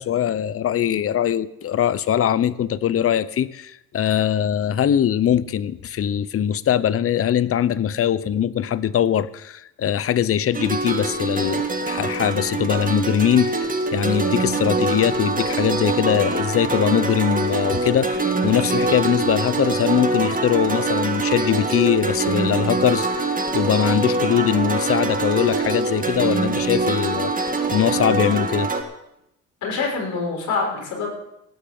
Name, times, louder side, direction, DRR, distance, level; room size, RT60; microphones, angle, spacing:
voice 1, 0.0-28.7, left 10 dB, 50° left, 17 dB, 0.7 m, -22 dB
sound 1, 10.5-28.8, right 3 dB, 30° right, 2.0 m, -24 dB
voice 2, 29.6-31.1, left 4 dB, 70° left, 0 dB, 6.2 m, -25 dB
18.0 x 6.9 x 7.8 m, 0.85 s
cardioid pair, 90°, 30 cm